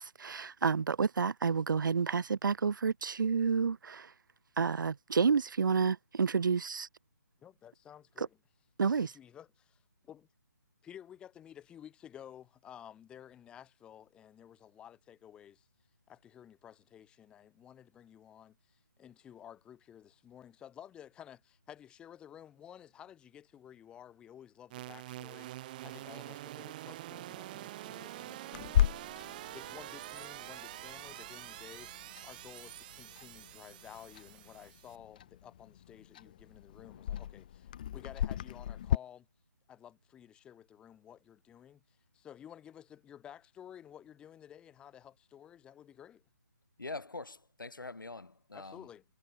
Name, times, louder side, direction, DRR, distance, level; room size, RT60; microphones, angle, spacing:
voice 1, 0.0-4.1 4.6-6.9 8.2-8.3 8.8-9.1, right 5 dB, 75° right, 0.4 m, -30 dB
voice 2, 7.4-8.4 9.0-10.3 10.8-15.7 16.1-39.3 39.7-46.2 48.5-49.0, left 10 dB, 10° left, 1.0 m, -53 dB
sound 1, 24.7-35.0, right 15 dB, 25° right, 1.0 m, -46 dB
Clock, 28.5-39.0, left 10 dB, 25° left, 0.3 m, -37 dB
sound 2, 29.6-34.7, right 8 dB, 40° right, 1.6 m, -62 dB
voice 3, 46.8-48.9, left 3 dB, 80° left, 2.7 m, -44 dB
figure-of-eight pair, 150°, 11 cm